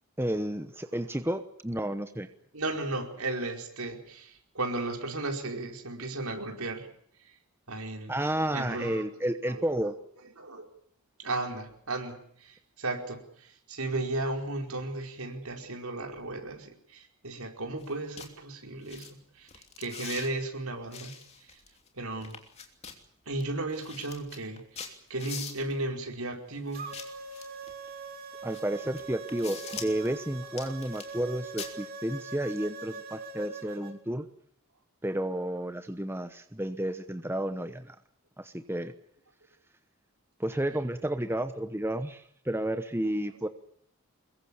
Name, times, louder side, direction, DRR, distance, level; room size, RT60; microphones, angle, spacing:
voice 1, 0.2-2.3 8.1-10.0 28.4-34.2 35.0-38.0 38.4-38.9 40.4-43.5, right 1 dB, 10° right, 9 dB, 1.0 m, -31 dB
voice 2, 2.5-6.9 7.2-7.3 7.7-8.2 8.5-9.0 9.5-9.6 10.4-10.7 11.2-21.1 21.5-21.6 21.9-22.4 23.2-26.9, right 2 dB, 80° right, 3 dB, 4.9 m, -35 dB
sound 1, 17.8-17.9 18.2-18.3 18.8-19.1 19.5-20.3 20.9-21.9 22.2-23.0 23.4-23.5 23.7-25.8 26.7-27.7 28.5-28.6 29.0-30.1 30.5-31.3 31.6-31.7, left 6 dB, 30° left, 3.0 m, -43 dB
sound 2, 26.7-33.9, right 4 dB, 40° right, 3.6 m, -42 dB
24.5 x 22.0 x 7.2 m, 0.65 s
head